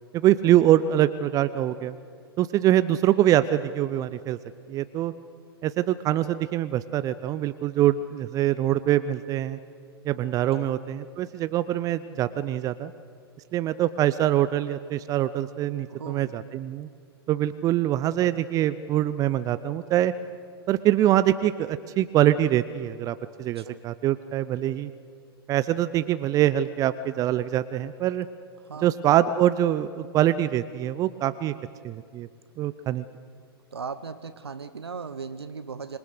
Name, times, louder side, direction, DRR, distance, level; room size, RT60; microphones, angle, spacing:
voice 1, 0.1-2.0 2.4-4.4 4.7-5.1 5.6-9.6 10.1-12.9 13.5-16.9 17.3-20.1 20.7-24.9 25.5-28.3 28.8-31.5 31.8-32.3 32.6-33.0, right 12 dB, 25° right, 14 dB, 0.5 m, -24 dB
voice 2, 15.9-16.4 23.5-23.8 28.6-28.9 33.7-36.0, right 5 dB, 80° right, 12 dB, 0.9 m, -38 dB
26.0 x 22.0 x 6.7 m, 2.3 s
figure-of-eight pair, 105°, 13 cm